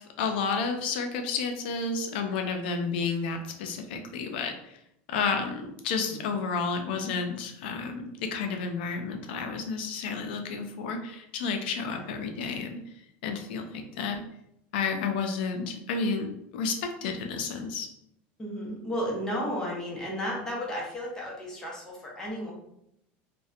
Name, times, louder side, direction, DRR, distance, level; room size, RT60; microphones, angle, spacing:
voice 1, 0.0-4.8 5.1-12.8 13.2-14.2 14.7-17.9, left 5 dB, 90° left, 4 dB, 0.4 m, -31 dB
voice 2, 18.4-22.5, equal, 10° left, -4 dB, 0.7 m, -33 dB
2.5 x 2.1 x 2.4 m, 0.78 s
supercardioid pair, 150°, 5 cm